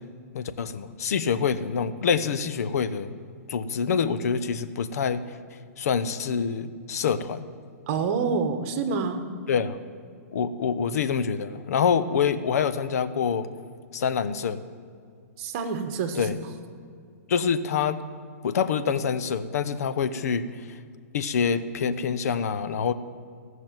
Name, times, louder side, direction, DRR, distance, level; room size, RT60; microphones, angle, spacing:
voice 1, 0.3-3.1 3.5-7.5 9.5-9.8 10.3-13.5 13.9-14.6 16.2-16.4 17.3-18.0 18.4-20.8 21.1-22.9, left 6 dB, 70° left, 13 dB, 0.8 m, -26 dB
voice 2, 7.9-9.2 15.4-16.2, right 5 dB, 40° right, 7 dB, 1.5 m, -27 dB
17.0 x 6.3 x 9.0 m, 2.2 s
hypercardioid pair, 150°, 9 cm